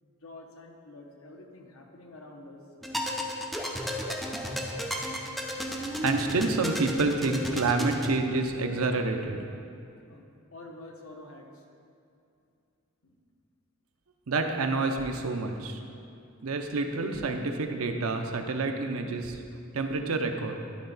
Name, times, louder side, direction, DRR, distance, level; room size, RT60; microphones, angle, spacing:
voice 1, 0.0-2.6 10.1-10.2 10.5-11.6 13.0-13.2, left 2 dB, 70° left, 1 dB, 0.9 m, -48 dB
sound 1, 2.8-8.2, equal, ahead, 0.5 m, -33 dB
voice 2, 6.0-9.4 14.3-15.8 16.4-19.4 19.7-20.6, right 3 dB, 80° right, 5 dB, 0.6 m, -28 dB
11.5 x 4.3 x 4.0 m, 2.5 s
head